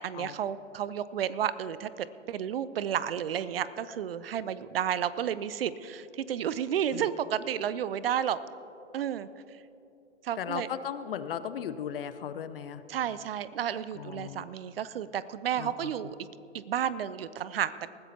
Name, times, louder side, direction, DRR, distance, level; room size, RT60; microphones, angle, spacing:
voice 1, 0.0-8.4 8.9-9.3 10.2-10.7 12.9-16.1 16.5-17.9, right 9 dB, 55° right, 16 dB, 0.6 m, -32 dB
voice 2, 10.4-12.8 13.9-14.5 15.6-15.9, left 8 dB, 50° left, 13 dB, 0.7 m, -36 dB
20.0 x 15.0 x 2.9 m, 2.9 s
figure-of-eight pair, 120°, 36 cm